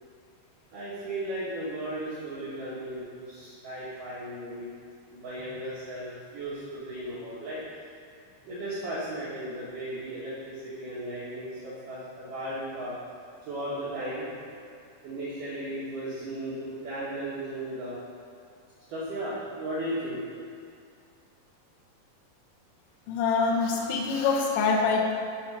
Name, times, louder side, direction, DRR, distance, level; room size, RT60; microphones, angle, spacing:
voice 1, 0.7-4.7 5.1-7.6 8.4-12.9 13.5-14.3 15.0-18.0 18.9-20.2, right 1 dB, 65° right, -9 dB, 2.3 m, -35 dB
voice 2, 23.1-25.1, left 4 dB, 85° left, -2 dB, 3.0 m, -25 dB
8.0 x 4.0 x 6.0 m, 2.4 s
omnidirectional pair, 4.9 m